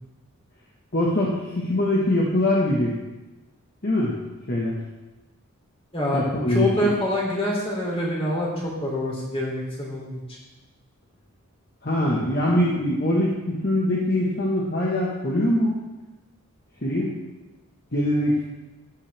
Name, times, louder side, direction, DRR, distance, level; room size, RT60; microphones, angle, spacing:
voice 1, 0.9-2.9 3.8-4.2 4.5-4.7 6.1-6.9 11.8-15.8 16.8-17.1 17.9-18.4, left 1 dB, 45° left, -4 dB, 1.5 m, -23 dB
voice 2, 6.5-10.2, left 1 dB, 25° left, -3 dB, 3.0 m, -25 dB
13.0 x 9.0 x 3.5 m, 1.1 s
head